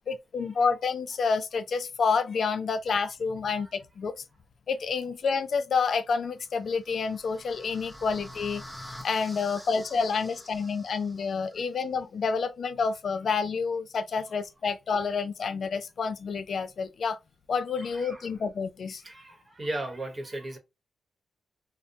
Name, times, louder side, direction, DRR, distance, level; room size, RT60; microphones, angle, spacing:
voice 1, 0.1-4.1 4.7-8.6 9.0-17.2 17.5-19.0, left 5 dB, 60° left, 0.3 m, -29 dB
sound 1, 6.4-11.5, equal, ahead, 0.7 m, -47 dB
voice 2, 17.8-18.3 19.0-20.6, right 1 dB, 30° right, 0.9 m, -38 dB
2.7 x 2.1 x 2.6 m
cardioid pair, 90°, 0 cm